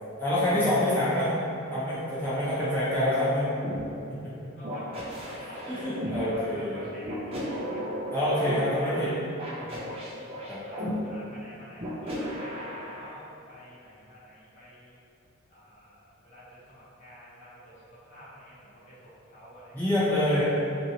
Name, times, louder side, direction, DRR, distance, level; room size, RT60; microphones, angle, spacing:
voice 1, 0.2-1.3 1.7-3.5 4.2-4.3 5.7-6.9 8.1-9.1 9.6-9.8 10.5-10.6 19.7-20.4, left 1 dB, 10° left, -12 dB, 0.9 m, -26 dB
voice 2, 2.5-3.0 4.5-7.9 8.6-9.2 10.6-15.0 15.5-20.4, equal, 35° left, -11 dB, 1.0 m, -48 dB
sound 1, 3.6-3.8 4.6-6.2 7.0-8.5 9.4-10.9 11.8-13.1, equal, 30° right, 0.5 m, -35 dB
2.9 x 2.6 x 2.8 m, 2.6 s
head